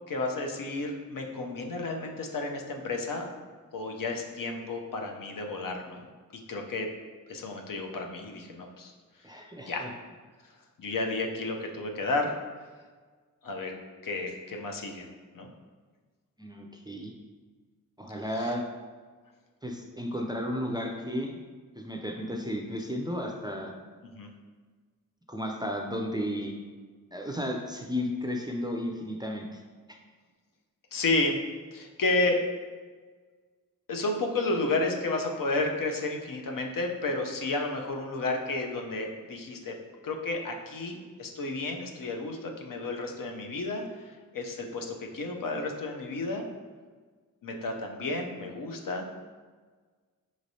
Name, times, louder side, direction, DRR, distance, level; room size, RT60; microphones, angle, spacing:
voice 1, 0.1-3.3 3.7-6.0 6.3-6.9 7.3-8.9 9.7-9.9 10.8-12.3 13.4-13.7 14.0-15.1 15.3-15.5 18.3-18.5 24.1-24.3 30.9-31.4 31.7-32.4 33.9-39.7 40.0-46.5 47.4-49.1, left 2 dB, 65° left, 2 dB, 0.6 m, -32 dB
voice 2, 9.2-9.9 16.4-17.1 18.0-18.7 19.6-21.3 21.8-23.7 25.3-26.6 27.1-29.6, equal, 10° right, 1 dB, 0.4 m, -33 dB
5.1 x 3.1 x 2.7 m, 1.5 s
wide cardioid pair, 80°, 35 cm